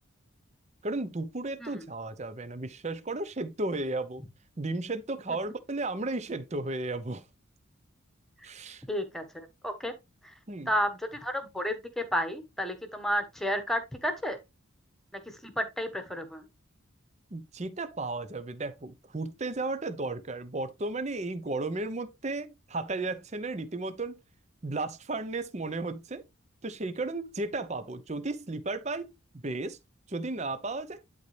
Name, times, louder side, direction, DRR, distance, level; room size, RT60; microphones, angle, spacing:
voice 1, 0.8-4.2 4.6-7.2 8.4-8.8 10.5-10.7 17.3-24.2 24.6-26.2 26.6-29.1 29.4-29.8 30.1-31.0, right 2 dB, 30° right, 0.7 m, -34 dB
voice 2, 8.9-9.9 10.7-14.4 15.4-16.4, equal, ahead, 1.3 m, -31 dB
11.5 x 4.1 x 3.2 m
head